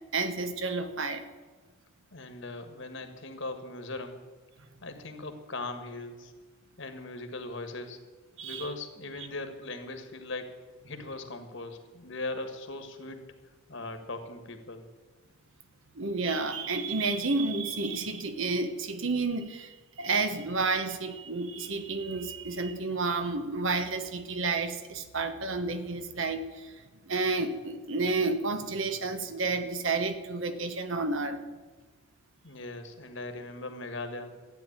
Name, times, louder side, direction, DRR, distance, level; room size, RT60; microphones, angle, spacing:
voice 1, 0.1-1.3 8.4-8.7 15.9-26.7 27.0-31.4, right 3 dB, 60° right, 9 dB, 1.2 m, -30 dB
voice 2, 2.1-4.2 4.8-6.3 6.8-8.0 8.4-10.5 10.9-13.2 13.7-14.8 32.4-34.3, left 2 dB, 55° left, 7 dB, 1.7 m, -39 dB
13.5 x 9.3 x 8.7 m, 1.4 s
head